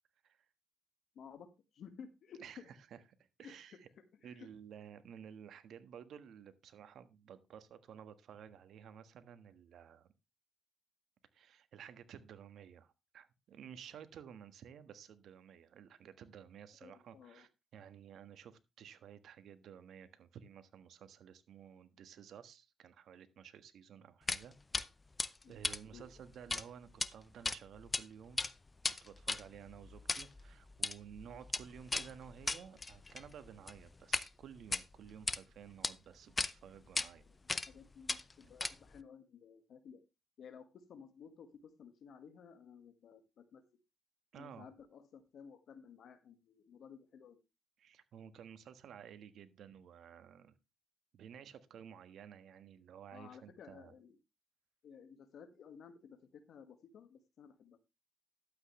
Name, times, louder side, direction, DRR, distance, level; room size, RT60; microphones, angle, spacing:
voice 1, 1.2-2.7 3.4-3.5 4.2-4.5 16.8-17.5 25.4-25.5 25.9-26.1 37.3-40.0 40.4-43.6 44.4-47.4 53.1-54.2 54.8-57.8, left 6 dB, 65° left, 1.7 m, -55 dB
voice 2, 3.4-3.9 4.2-10.1 11.3-24.6 25.5-28.5 29.0-37.2 44.3-44.7 47.8-50.5 51.1-53.9, right 8 dB, 70° right, 1.4 m, -54 dB
sound 1, 24.3-24.4 24.7-24.9 25.2-26.6 26.9-27.1 27.4-28.0 28.3-34.3 34.6-35.4 35.8-35.9 36.4-36.5 37.0-37.1 37.5-37.8 38.1-39.0, left 3 dB, 20° left, 0.7 m, -37 dB
12.0 x 8.4 x 3.2 m
cardioid pair, 90°, 0 cm